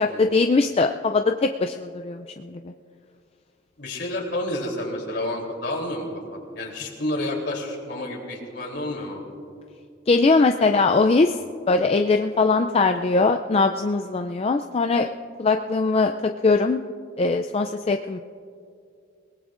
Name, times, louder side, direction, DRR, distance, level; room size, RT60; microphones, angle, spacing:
voice 1, 0.0-2.7 10.1-11.4 11.7-15.1 15.4-16.1 16.4-16.8 17.2-18.2, left 3 dB, 30° left, 6 dB, 0.4 m, -21 dB
voice 2, 3.8-9.2 10.9-11.2, left 1 dB, 60° left, -1 dB, 3.4 m, -30 dB
28.5 x 18.5 x 2.5 m, 2.4 s
head